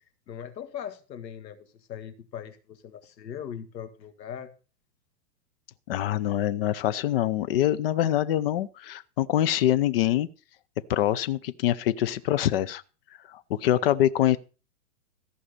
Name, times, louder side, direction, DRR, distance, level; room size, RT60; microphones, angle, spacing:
voice 1, 0.0-4.5 13.7-13.9, left 9 dB, 80° left, 2.1 m, -40 dB
voice 2, 5.9-10.3 10.9-12.8 13.3-14.4, left 12 dB, 35° left, 0.6 m, -24 dB
14.5 x 5.5 x 6.7 m
hypercardioid pair, 155°, 50 cm